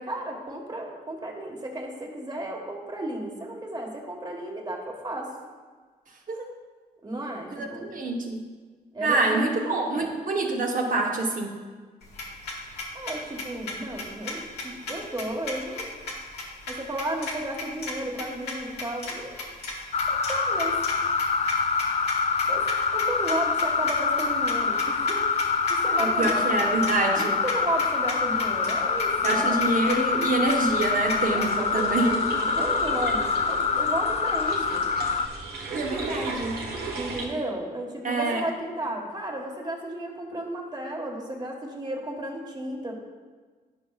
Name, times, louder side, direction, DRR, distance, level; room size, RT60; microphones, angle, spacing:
voice 1, 0.0-5.3 7.0-7.9 8.9-10.1 12.9-15.9 16.7-19.3 20.1-20.8 22.5-25.2 25.7-26.6 27.1-29.6 31.3-34.9 36.9-42.9, right 1 dB, 25° right, 0 dB, 1.5 m, -33 dB
voice 2, 7.5-8.4 9.0-11.5 26.0-27.3 29.2-32.1 35.7-36.6 38.0-38.4, right 2 dB, 55° right, 0 dB, 1.0 m, -26 dB
sound 1, 12.0-31.5, left 2 dB, 90° left, 1.2 m, -36 dB
sound 2, 19.9-35.3, left 5 dB, 40° left, 0.4 m, -25 dB
sound 3, 30.7-37.3, right 3 dB, 75° right, 1.3 m, -36 dB
9.8 x 5.3 x 2.4 m, 1.5 s
cardioid pair, 70°, 17 cm